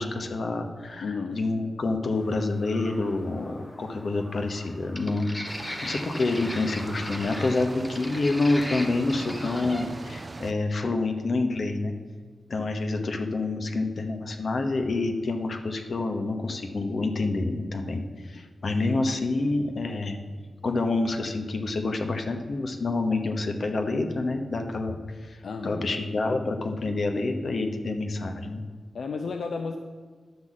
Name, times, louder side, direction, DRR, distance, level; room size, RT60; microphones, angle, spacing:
voice 1, 0.0-5.3 5.8-11.9 12.5-20.2 20.6-28.6, left 2 dB, 45° left, 5 dB, 0.9 m, -28 dB
voice 2, 1.0-1.4 25.4-26.0 26.9-27.0 28.9-29.8, left 4 dB, 65° left, 5 dB, 0.5 m, -33 dB
sound 1, 2.1-9.8, left 1 dB, 10° left, 0.8 m, -39 dB
sound 2, 5.5-10.5, right 2 dB, 25° right, 0.4 m, -40 dB
11.5 x 4.0 x 7.3 m, 1.5 s
wide cardioid pair, 175°, 0 cm